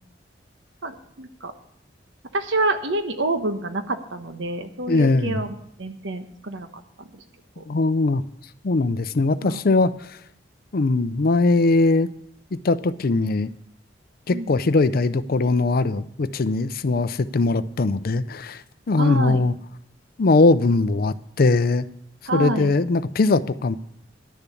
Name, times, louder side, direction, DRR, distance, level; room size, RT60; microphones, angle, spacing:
voice 1, 0.8-1.5 2.3-6.7 7.1-7.2 7.6-7.7 9.4-9.6 14.3-14.6 19.0-19.4 22.3-22.7, right 2 dB, 70° right, 8 dB, 1.1 m, -27 dB
voice 2, 4.9-5.4 7.7-8.2 8.6-9.9 10.7-12.1 12.5-13.5 14.3-18.6 18.9-19.5 20.2-21.8 22.3-23.8, left 3 dB, 55° left, 14 dB, 0.5 m, -20 dB
11.5 x 6.9 x 8.3 m, 0.72 s
head